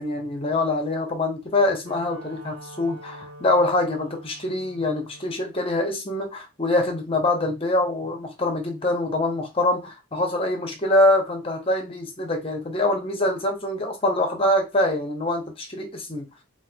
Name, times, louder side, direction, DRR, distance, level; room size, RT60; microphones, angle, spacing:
voice 1, 0.0-16.3, left 1 dB, 25° left, 0.6 m, -24 dB
Wind instrument woodwind instrument, 1.4-5.5, right 2 dB, 80° right, 0.9 m, -45 dB
4.1 x 2.3 x 2.2 m
head